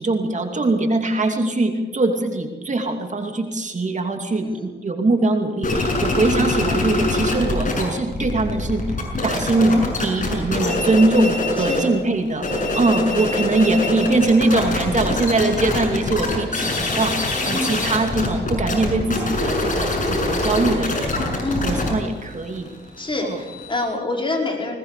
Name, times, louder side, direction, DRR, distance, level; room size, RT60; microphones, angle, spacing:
voice 1, 0.0-8.8 9.2-22.7 23.3-23.4, right 2 dB, 40° right, 4 dB, 2.6 m, -22 dB
voice 2, 4.4-4.7 5.9-6.1 11.6-11.8 12.5-12.8 17.4-17.9 21.4-21.9 23.0-24.8, left 2 dB, 25° left, 1 dB, 5.1 m, -27 dB
sound 1, 5.6-7.8 8.1-11.9 12.3-23.9, left 2 dB, 45° left, 6.7 m, -24 dB
20.5 x 19.5 x 6.8 m, 1.3 s
cardioid pair, 80°, 19 cm